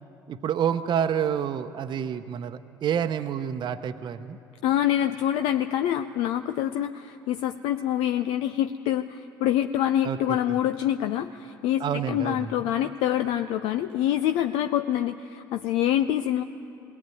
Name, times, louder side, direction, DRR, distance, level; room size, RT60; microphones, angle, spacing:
voice 1, 0.3-4.4 10.0-10.4 11.8-12.5, right 8 dB, 45° right, 7 dB, 0.9 m, -28 dB
voice 2, 4.6-16.4, left 11 dB, 60° left, 8 dB, 0.6 m, -26 dB
20.5 x 18.0 x 9.3 m, 2.8 s
figure-of-eight pair, 60°, 11 cm